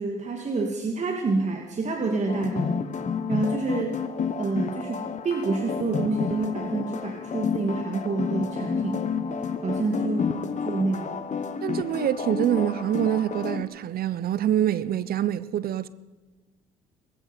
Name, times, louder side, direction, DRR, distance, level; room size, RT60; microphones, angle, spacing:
voice 1, 0.0-2.8 3.3-4.0 4.4-9.0 9.6-10.4 10.6-11.3, right 3 dB, 40° right, 2.5 m, -28 dB
sound 1, 2.3-13.6, left 6 dB, 40° left, 1.5 m, -30 dB
voice 2, 11.6-15.9, right 11 dB, 55° right, 0.9 m, -25 dB
20.5 x 15.0 x 4.5 m
hypercardioid pair, 60°, 18 cm